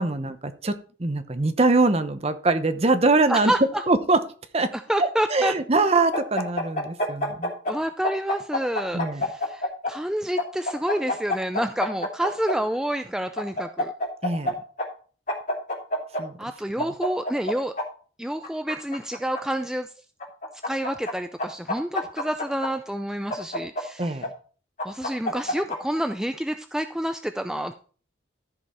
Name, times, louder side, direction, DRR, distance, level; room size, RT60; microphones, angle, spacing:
voice 1, 0.0-3.5 3.9-4.2 4.5-4.7 5.0-7.5 8.9-9.3 14.2-14.5 16.2-16.3 16.8-16.9 24.0-24.2, right 3 dB, 35° right, 10 dB, 0.8 m, -23 dB
voice 2, 3.3-3.8 4.7-5.5 7.7-13.9 16.4-17.7 18.2-19.9 20.6-24.2 24.8-27.7, right 1 dB, 5° right, 8 dB, 0.4 m, -28 dB
sound 1, 6.1-7.7 8.0-9.9 10.4-12.5 13.4-14.5 14.8-14.9 15.3-16.2 16.8-17.8 18.4-19.4 20.2-21.1 21.4-22.7 23.3-24.3 24.8-25.8, left 1 dB, 40° left, 3.2 m, -27 dB
13.5 x 5.4 x 4.3 m, 0.40 s
head